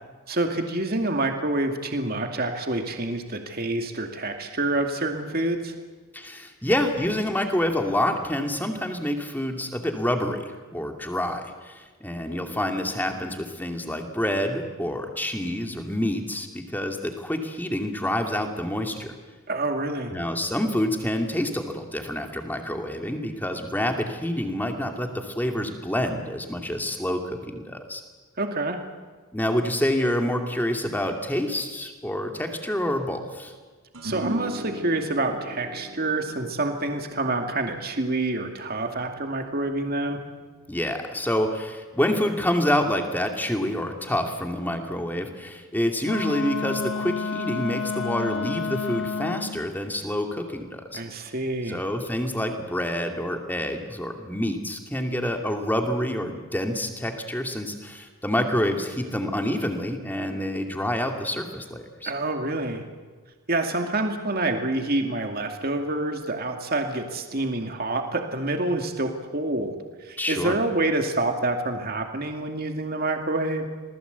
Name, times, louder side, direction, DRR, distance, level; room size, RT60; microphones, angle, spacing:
voice 1, 0.3-5.8 19.5-20.1 28.4-28.8 34.0-40.2 50.9-51.8 62.0-62.8 63.5-73.7, right 2 dB, 45° right, 4 dB, 2.4 m, -27 dB
voice 2, 6.1-19.1 20.1-28.0 29.3-33.5 40.7-51.0 51.7-62.1 70.2-70.6, left 1 dB, 10° left, 4 dB, 2.5 m, -27 dB
sound 1, 33.9-40.5, equal, 75° right, 6.3 m, -40 dB
Wind instrument woodwind instrument, 46.0-49.7, left 5 dB, 65° left, 0.9 m, -30 dB
27.5 x 19.5 x 8.3 m, 1.4 s
head